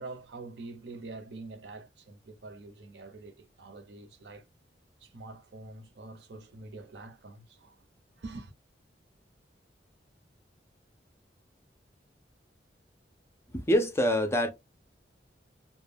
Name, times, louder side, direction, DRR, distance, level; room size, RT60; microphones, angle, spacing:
voice 1, 0.0-4.4 5.0-7.8 8.2-8.5, right 3 dB, 70° right, 0.6 m, -45 dB
voice 2, 13.5-14.5, equal, 15° left, 0.4 m, -25 dB
2.2 x 2.0 x 3.3 m
head